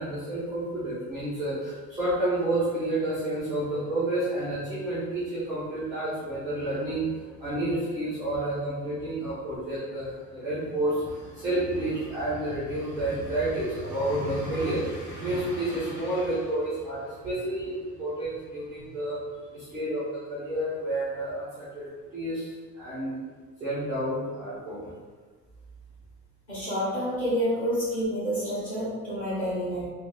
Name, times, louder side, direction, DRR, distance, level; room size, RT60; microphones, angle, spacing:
voice 1, 0.0-19.2 19.5-23.2 23.6-24.9, right 1 dB, 10° right, -11 dB, 0.3 m, -30 dB
voice 2, 26.5-29.9, equal, 20° left, -10 dB, 1.3 m, -28 dB
3.2 x 2.0 x 2.4 m, 1.5 s
cardioid pair, 175°, 34 cm